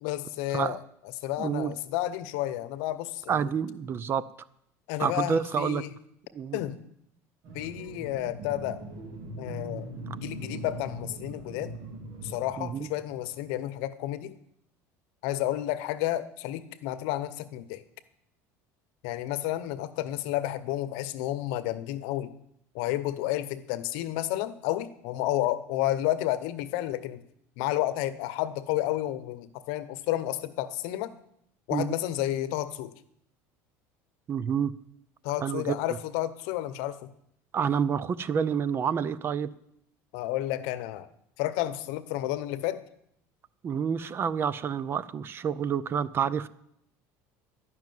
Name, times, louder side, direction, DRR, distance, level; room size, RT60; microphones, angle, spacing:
voice 1, 0.0-0.8 1.2-3.5 4.9-5.9 6.5-6.8 7.5-8.8 9.4-9.9 10.2-11.7 12.2-14.3 15.2-17.8 19.0-22.3 22.7-27.2 27.6-31.1 31.7-32.9 35.2-37.1 40.1-41.1 41.4-42.8, left 14 dB, 75° left, 13 dB, 0.8 m, -31 dB
voice 2, 1.4-1.7 3.3-4.2 5.0-5.8 6.3-6.6 12.6-12.9 31.7-31.9 34.3-34.7 35.4-35.8 37.5-39.5 43.6-46.5, right 7 dB, 30° right, 17 dB, 0.5 m, -28 dB
sound 1, 7.4-13.7, right 1 dB, 60° right, 2.4 m, -41 dB
12.0 x 6.0 x 9.3 m, 0.73 s
cardioid pair, 125°, 7 cm